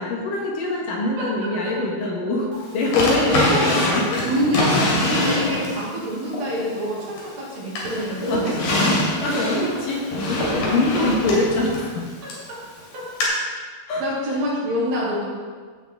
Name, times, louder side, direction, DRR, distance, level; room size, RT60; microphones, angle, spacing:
voice 1, 0.0-2.5 2.7-3.3 3.7-4.2 5.3-5.6 8.3-8.5 9.2-12.1 13.9-14.0, left 2 dB, 65° left, -2 dB, 3.0 m, -24 dB
voice 2, 1.2-1.8 3.2-9.0 12.2-12.3 14.0-15.3, equal, 75° right, -7 dB, 4.8 m, -26 dB
Drawer open or close, 2.9-5.8 6.3-7.4 7.8-12.5 13.2-13.3, left 1 dB, 80° left, 4.3 m, -24 dB
15.5 x 7.0 x 3.7 m, 1.5 s
omnidirectional pair, 4.3 m